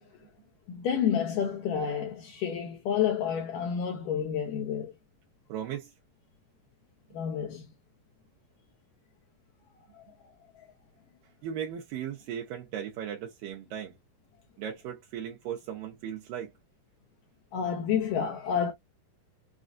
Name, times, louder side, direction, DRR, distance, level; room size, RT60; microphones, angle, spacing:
voice 1, 0.7-4.9 7.1-7.6 17.5-18.7, left 8 dB, 75° left, 2.3 m, -29 dB
voice 2, 5.5-5.9 11.4-13.9 14.6-16.5, right 9 dB, 75° right, 2.4 m, -37 dB
6.4 x 2.3 x 2.5 m
omnidirectional pair, 4.2 m